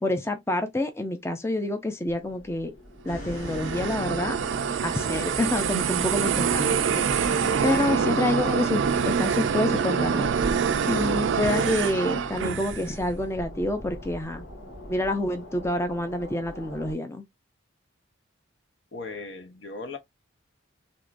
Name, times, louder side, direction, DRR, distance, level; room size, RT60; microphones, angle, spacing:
voice 1, 0.0-2.7 3.1-4.4 4.8-7.0 7.6-10.3 10.8-14.5 14.9-17.2, left 1 dB, 15° left, 0.4 m, -28 dB
sound 1, 2.1-16.9, equal, 80° left, 1.5 m, -44 dB
sound 2, 3.1-11.8, left 1 dB, 40° left, 1.7 m, -39 dB
sound 3, 3.2-13.0, right 7 dB, 70° right, 0.3 m, -26 dB
voice 2, 18.9-20.0, left 3 dB, 65° left, 0.8 m, -37 dB
3.6 x 2.9 x 2.5 m
head